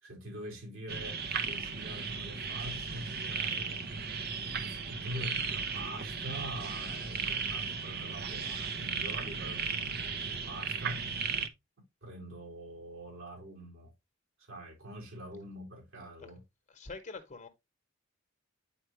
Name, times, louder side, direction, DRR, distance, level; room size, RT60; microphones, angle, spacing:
voice 1, 0.0-3.9 4.5-11.1 12.0-13.9 14.4-16.4, equal, 70° right, 4.2 m, -45 dB
sound 1, 0.9-11.5, right 5 dB, 50° right, 0.8 m, -36 dB
voice 2, 16.7-17.5, left 4 dB, 40° left, 1.0 m, -44 dB
9.2 x 4.5 x 3.1 m
head